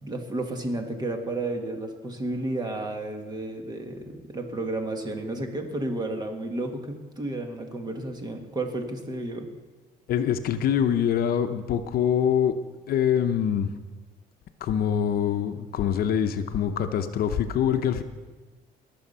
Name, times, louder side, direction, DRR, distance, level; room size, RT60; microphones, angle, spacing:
voice 1, 0.0-9.5, right 2 dB, 25° right, 4 dB, 1.8 m, -32 dB
voice 2, 10.1-12.5 12.9-13.7 14.6-18.0, left 9 dB, 65° left, 9 dB, 0.8 m, -24 dB
19.0 x 7.1 x 5.6 m, 1.3 s
cardioid pair, 110°, 17 cm